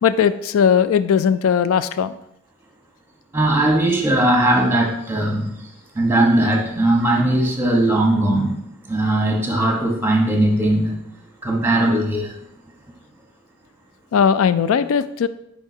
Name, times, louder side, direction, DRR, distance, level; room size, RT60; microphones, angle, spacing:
voice 1, 0.0-2.2 14.1-15.3, left 7 dB, 75° left, 13 dB, 0.3 m, -18 dB
voice 2, 3.3-5.5 5.9-11.0 11.4-12.3, right 1 dB, 10° right, 0 dB, 1.1 m, -19 dB
10.5 x 4.4 x 2.8 m, 0.80 s
head